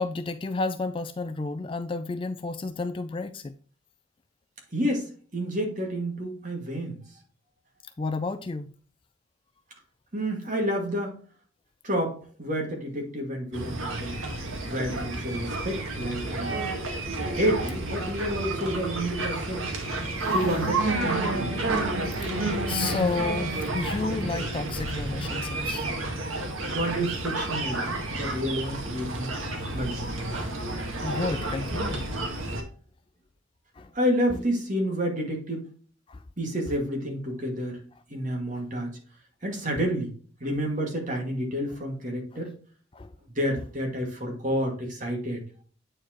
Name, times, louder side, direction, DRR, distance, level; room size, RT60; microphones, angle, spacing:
voice 1, 0.0-3.5 8.0-8.7 22.2-25.9 31.0-32.0 33.8-33.9 36.1-36.2 42.9-43.1, left 3 dB, 25° left, 0.3 m, -31 dB
voice 2, 4.7-5.1 5.3-7.0 10.1-11.2 11.8-14.2 14.6-16.5 17.3-19.7 20.3-21.7 26.7-29.3 29.7-30.3 33.9-35.7 36.4-37.8 38.1-38.9 39.4-40.1 40.4-42.5 43.3-45.4, equal, 40° right, 2.1 m, -29 dB
sound 1, 13.5-32.6, right 2 dB, 85° right, 1.6 m, -30 dB
8.7 x 4.7 x 3.0 m
head